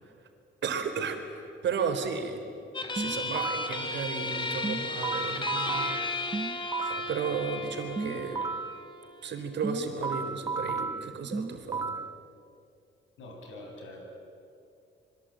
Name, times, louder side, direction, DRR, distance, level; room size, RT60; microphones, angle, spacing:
voice 1, 0.6-2.4 2.9-6.4 6.8-8.4 9.2-12.0, right 5 dB, 65° right, 5 dB, 4.0 m, -34 dB
sound 1, 2.7-9.8, left 3 dB, 25° left, 2.8 m, -35 dB
sound 2, 3.0-3.8 4.6-7.2 8.0-8.8 9.6-12.2, right 4 dB, 20° right, 0.6 m, -33 dB
voice 2, 13.2-14.2, left 1 dB, 80° left, 1 dB, 7.5 m, -45 dB
26.5 x 23.0 x 9.0 m, 2.5 s
cardioid pair, 90°, 20 cm